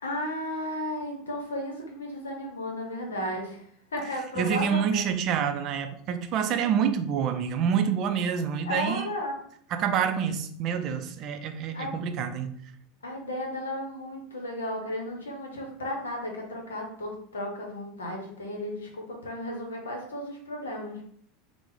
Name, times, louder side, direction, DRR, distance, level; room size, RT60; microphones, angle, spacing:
voice 1, 0.0-3.6 3.9-5.1 8.6-9.4 11.7-11.9 13.0-21.0, left 1 dB, 80° left, 1 dB, 0.7 m, -34 dB
voice 2, 4.4-9.1 9.7-12.6, right 7 dB, 45° right, 8 dB, 0.3 m, -27 dB
3.0 x 2.0 x 3.7 m, 0.64 s
figure-of-eight pair, 80°, 0 cm